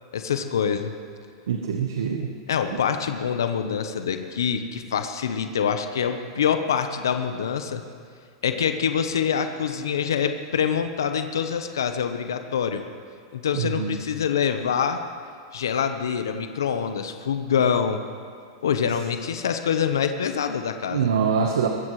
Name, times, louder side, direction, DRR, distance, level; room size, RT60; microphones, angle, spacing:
voice 1, 0.1-0.9 2.5-7.8 8.4-12.8 13.3-15.0 15.5-18.0 18.6-21.1, left 7 dB, 85° left, 7 dB, 0.9 m, -25 dB
voice 2, 1.5-2.3 2.7-2.8 13.5-14.0 20.9-21.7, right 6 dB, 85° right, 3 dB, 1.1 m, -24 dB
20.5 x 15.5 x 3.2 m, 2.2 s
hypercardioid pair, 115°, 2 cm